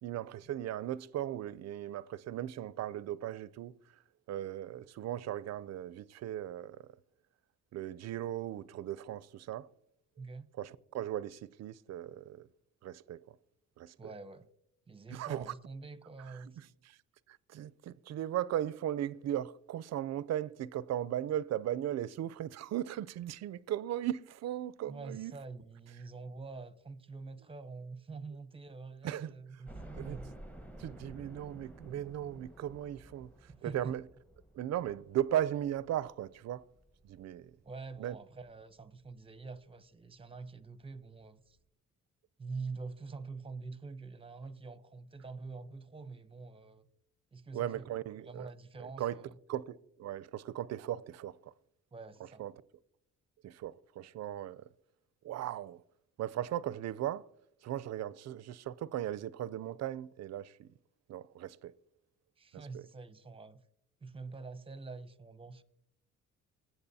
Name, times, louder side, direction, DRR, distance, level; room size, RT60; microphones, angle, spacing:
voice 1, 0.0-3.7 4.3-6.9 7.7-9.7 10.6-12.5 12.8-13.4 13.8-14.0 15.1-15.5 16.6-17.0 17.3-25.3 29.0-29.3 29.7-30.2 30.8-33.3 33.6-34.0 34.5-36.6 37.0-37.6 38.0-38.2 47.5-48.5 48.8-49.2 49.5-51.4 52.4-52.5 53.4-54.7 55.2-55.8 56.2-57.3 57.6-60.7 61.1-61.7 62.5-62.8, right 12 dB, 60° right, 0.5 m, -37 dB
voice 2, 10.2-10.5 14.0-14.5 14.9-16.6 24.9-30.3 33.5-33.9 37.6-41.6 42.4-46.8 47.3-47.9 48.3-49.4 51.9-52.4 62.4-63.6 64.0-65.6, right 4 dB, 20° right, 0.7 m, -46 dB
sound 1, 29.7-38.6 39.0-39.1 39.5-39.6 40.8-40.9 41.2-41.3, right 1 dB, 5° left, 1.1 m, -52 dB
20.5 x 7.9 x 2.7 m
cardioid pair, 90°, 30 cm